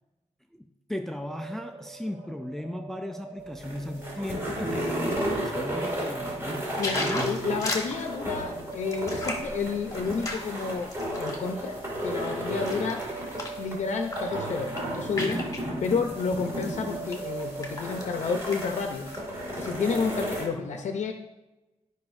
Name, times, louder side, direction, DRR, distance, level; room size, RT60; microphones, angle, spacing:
voice 1, 0.5-7.2, left 1 dB, 5° left, 6 dB, 0.4 m, -36 dB
sound 1, 1.2-19.6, right 4 dB, 65° right, 1.7 m, -42 dB
sound 2, 3.4-20.4, equal, 20° right, 2.4 m, -34 dB
sound 3, 6.7-11.5 12.0-13.6 14.0-14.3 14.6-15.7 16.5-16.6 17.1-18.1 18.4-18.6 18.9-19.7 20.1-20.2, left 2 dB, 25° left, 1.5 m, -35 dB
voice 2, 6.8-13.1 13.6-15.4 15.8-19.1 19.6-21.1, left 5 dB, 80° left, 4 dB, 0.7 m, -30 dB
12.5 x 5.3 x 2.6 m, 1.0 s
wide cardioid pair, 125°, 12 cm